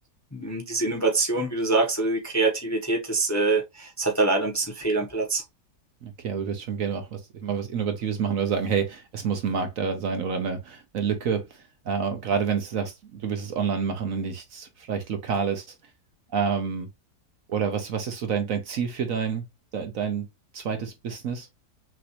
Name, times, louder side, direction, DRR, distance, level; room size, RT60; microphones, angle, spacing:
voice 1, 0.3-5.4, right 3 dB, 15° left, 0.8 m, -25 dB
voice 2, 6.0-15.7 16.3-16.9 17.5-19.4 19.7-20.3 20.5-21.5, right 6 dB, 60° right, 1.1 m, -28 dB
6.1 x 2.6 x 2.9 m
omnidirectional pair, 1.7 m